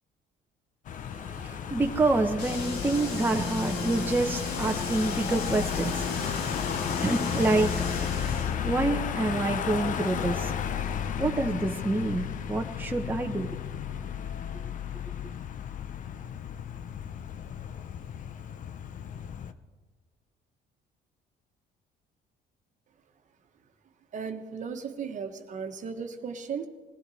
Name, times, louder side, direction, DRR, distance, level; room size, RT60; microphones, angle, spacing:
Car passing by / Engine, 0.9-19.5, left 8 dB, 50° left, 0.7 m, -34 dB
voice 1, 1.1-13.5, right 2 dB, 10° right, 0.9 m, -28 dB
sound 1, 2.4-8.5, left 3 dB, 90° left, 2.4 m, -35 dB
sound 2, 2.8-14.6, left 1 dB, 35° left, 2.5 m, -50 dB
voice 2, 24.1-26.7, right 6 dB, 45° right, 1.3 m, -36 dB
21.0 x 15.5 x 4.2 m
cardioid pair, 110°, 17 cm